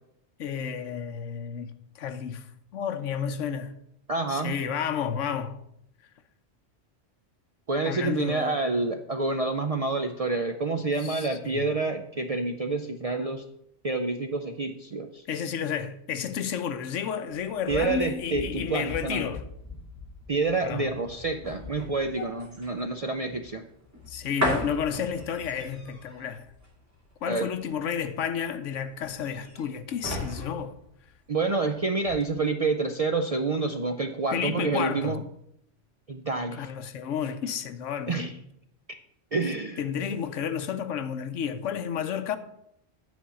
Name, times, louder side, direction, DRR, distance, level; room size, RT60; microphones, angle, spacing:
voice 1, 0.4-2.5 2.7-3.7 4.3-5.6 7.8-8.6 11.0-11.7 15.3-19.4 20.6-20.9 24.1-26.5 27.2-30.8 34.3-35.2 36.5-38.4 39.8-42.4, left 7 dB, 85° left, 1.1 m, -31 dB
voice 2, 4.1-4.5 7.7-13.4 13.8-15.2 17.7-19.3 20.3-23.6 27.3-27.5 31.3-35.2 36.1-36.7 38.1-38.3 39.3-39.8, right 3 dB, 50° right, 0.4 m, -28 dB
sound 1, 17.4-31.7 32.0-32.2, left 1 dB, 15° right, 2.1 m, -37 dB
9.3 x 4.4 x 6.9 m
omnidirectional pair, 1.3 m